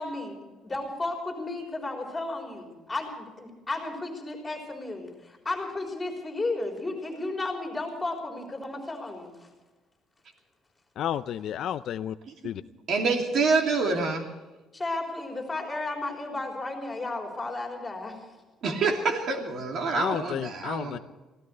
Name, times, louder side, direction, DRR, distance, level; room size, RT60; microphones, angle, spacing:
voice 1, 0.0-9.4 14.7-18.3, left 2 dB, 10° left, 1 dB, 3.8 m, -33 dB
voice 2, 11.0-12.2 12.4-12.6 20.0-21.0, left 10 dB, 50° left, 12 dB, 0.4 m, -31 dB
voice 3, 12.2-14.2 18.6-21.0, right 4 dB, 45° right, 3 dB, 2.8 m, -27 dB
25.0 x 16.5 x 3.3 m, 1.2 s
cardioid pair, 170°, 0 cm